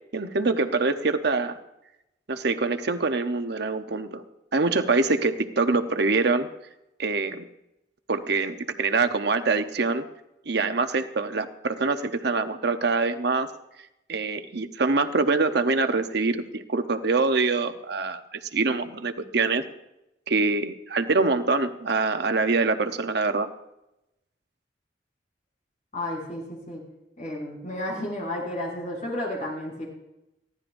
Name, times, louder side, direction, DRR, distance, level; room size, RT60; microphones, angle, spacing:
voice 1, 0.1-1.6 2.3-4.2 4.5-6.5 7.0-7.5 8.1-10.0 10.5-13.5 14.1-19.6 20.3-23.5, right 3 dB, 65° right, 8 dB, 0.9 m, -24 dB
voice 2, 25.9-26.8 27.2-29.8, left 1 dB, 45° left, -2 dB, 6.4 m, -32 dB
22.5 x 16.0 x 2.6 m, 0.88 s
head